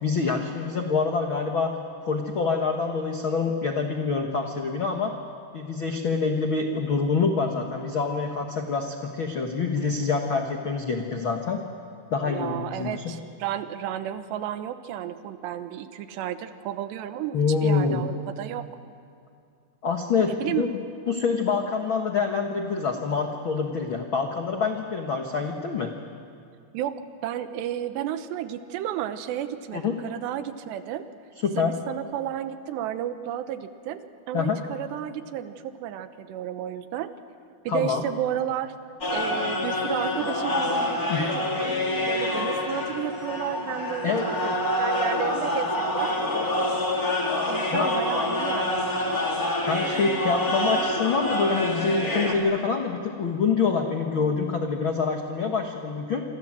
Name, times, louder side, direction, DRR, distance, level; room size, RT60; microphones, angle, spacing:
voice 1, 0.0-1.7 2.1-5.1 5.5-11.6 12.1-13.1 17.3-18.0 19.8-20.7 21.1-25.9 29.7-29.9 31.4-31.7 34.3-34.6 37.7-38.0 41.1-41.3 44.0-44.6 47.7-47.9 49.7-56.2, left 5 dB, 75° left, 3 dB, 1.1 m, -26 dB
voice 2, 12.3-18.7 20.2-20.7 26.7-31.1 31.6-37.1 37.6-38.7 39.1-44.5 44.8-46.1 47.4-49.2, right 11 dB, 90° right, 10 dB, 3.2 m, -32 dB
sound 1, 39.0-52.3, left 1 dB, 25° left, 2.6 m, -27 dB
27.5 x 25.0 x 7.6 m, 2.3 s
omnidirectional pair, 4.8 m